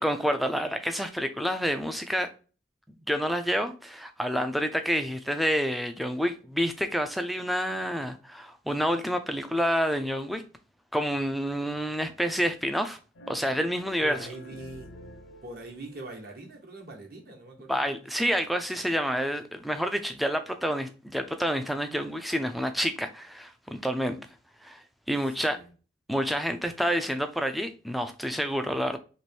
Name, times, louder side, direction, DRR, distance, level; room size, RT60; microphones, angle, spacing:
voice 1, 0.0-2.3 3.1-10.4 10.9-13.0 13.3-14.3 17.7-24.2 24.6-25.6 26.1-29.0, equal, ahead, 0.3 m, -28 dB
sound 1, 13.1-16.4, left 1 dB, 75° left, 0.6 m, -48 dB
voice 2, 14.0-15.0 15.4-18.0 18.2-18.5 25.3-25.7, right 2 dB, 50° right, 1.0 m, -43 dB
3.1 x 3.0 x 4.3 m
head